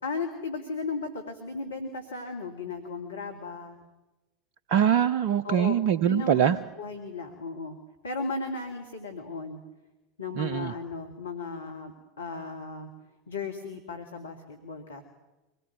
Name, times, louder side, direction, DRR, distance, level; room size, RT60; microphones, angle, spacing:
voice 1, 0.0-3.8 5.4-5.7 6.0-7.8 8.0-9.6 10.2-12.9 13.3-15.0, left 4 dB, 80° left, 3 dB, 2.2 m, -35 dB
voice 2, 4.7-6.6 10.3-10.7, right 9 dB, 55° right, 15 dB, 0.8 m, -23 dB
25.0 x 20.0 x 9.2 m, 1.1 s
figure-of-eight pair, 80°, 0 cm